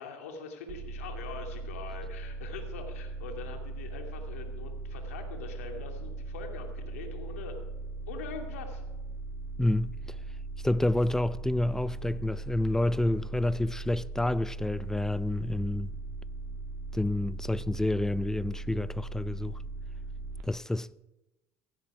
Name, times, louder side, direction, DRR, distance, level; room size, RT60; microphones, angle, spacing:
voice 1, 0.0-7.6 8.1-8.8, left 5 dB, 90° left, 2.5 m, -43 dB
sound 1, 0.7-20.4, right 3 dB, 80° right, 2.4 m, -39 dB
voice 2, 9.6-10.2 10.6-15.9 16.9-19.6 20.4-21.0, left 1 dB, 5° left, 0.6 m, -29 dB
16.5 x 16.0 x 4.9 m
hypercardioid pair, 75°, 7 cm